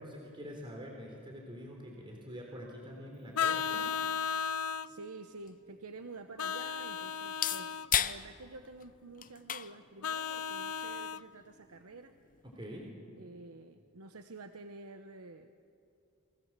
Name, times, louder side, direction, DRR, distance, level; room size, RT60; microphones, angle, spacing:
voice 1, 0.0-3.9 12.6-12.9, equal, 25° right, 0 dB, 3.8 m, -45 dB
Vehicle horn car horn honking, 3.3-4.9 6.4-7.9 10.0-11.2, left 7 dB, 85° left, 0.6 m, -34 dB
voice 2, 4.8-12.1 13.2-15.5, right 3 dB, 80° right, 7 dB, 1.0 m, -49 dB
sound 1, 4.9-12.9, left 10 dB, 40° left, 0.8 m, -40 dB
29.0 x 23.5 x 7.6 m, 2.5 s
head